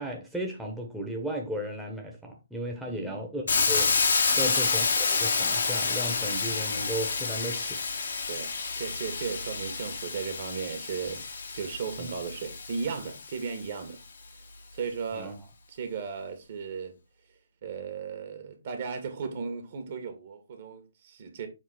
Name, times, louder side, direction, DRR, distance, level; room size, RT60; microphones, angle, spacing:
voice 1, 0.0-3.9 4.4-7.8 12.0-12.1 15.1-15.3, equal, ahead, 1.3 m, -35 dB
voice 2, 2.9-3.3 4.3-4.6 8.3-11.3 11.5-14.0 14.7-15.4 15.7-17.0 17.6-21.5, right 6 dB, 45° right, 2.0 m, -36 dB
Hiss, 3.5-13.4, left 4 dB, 60° left, 1.6 m, -29 dB
7.3 x 4.1 x 4.2 m
figure-of-eight pair, 130°, 0 cm